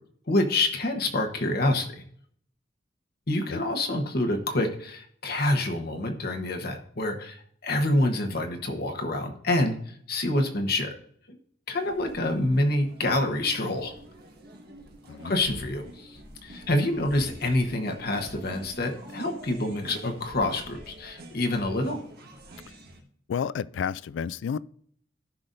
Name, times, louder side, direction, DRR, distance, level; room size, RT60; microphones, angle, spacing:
voice 1, 0.3-2.0 3.3-10.9 11.3-11.4 11.7-13.9 15.2-22.0, left 1 dB, 50° left, 1.1 m, -27 dB
sound 1, 11.7-23.0, right 1 dB, 55° right, 1.5 m, -46 dB
voice 2, 15.1-15.4 23.3-24.6, left 7 dB, 70° left, 0.3 m, -31 dB
15.0 x 5.9 x 2.6 m
head